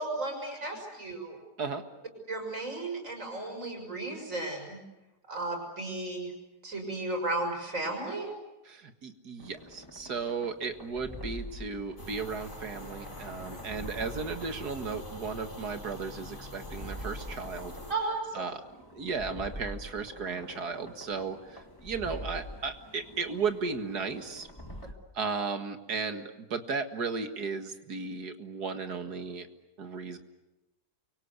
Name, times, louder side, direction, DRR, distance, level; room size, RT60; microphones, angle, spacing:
voice 1, 0.0-1.4 2.3-4.8 5.3-6.3 6.6-8.3 17.9-18.5, right 2 dB, 50° right, 3 dB, 6.6 m, -34 dB
voice 2, 8.7-17.7 18.3-18.6 18.9-24.5 25.1-29.5 29.8-30.2, right 5 dB, 75° right, 8 dB, 2.4 m, -35 dB
sound 1, 9.4-24.9, equal, 15° left, 2.0 m, -46 dB
sound 2, 12.0-17.9, left 1 dB, 50° left, 5.0 m, -44 dB
30.0 x 24.0 x 8.2 m, 1.0 s
omnidirectional pair, 1.7 m